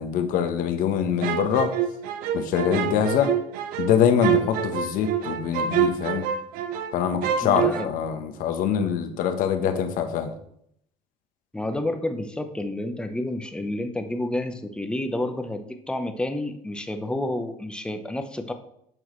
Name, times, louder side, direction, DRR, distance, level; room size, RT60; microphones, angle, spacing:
voice 1, 0.0-1.7 2.3-3.3 3.8-6.2 6.9-10.3, left 8 dB, 60° left, 7 dB, 1.1 m, -24 dB
sound 1, 1.2-6.9 7.2-7.8, right 9 dB, 65° right, 0.7 m, -26 dB
voice 2, 7.4-7.9 11.5-18.5, left 1 dB, 5° left, 7 dB, 0.8 m, -30 dB
9.0 x 6.3 x 3.2 m, 0.70 s
cardioid pair, 120°, 16 cm